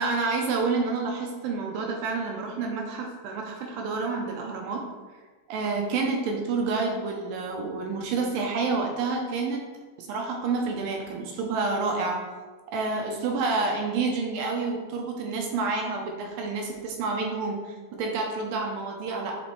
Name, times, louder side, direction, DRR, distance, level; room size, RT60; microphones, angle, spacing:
voice 1, 0.0-4.9 5.5-9.6 10.0-12.2 12.7-19.4, right 4 dB, 80° right, 1 dB, 2.1 m, -29 dB
9.4 x 3.8 x 3.1 m, 1.3 s
omnidirectional pair, 4.7 m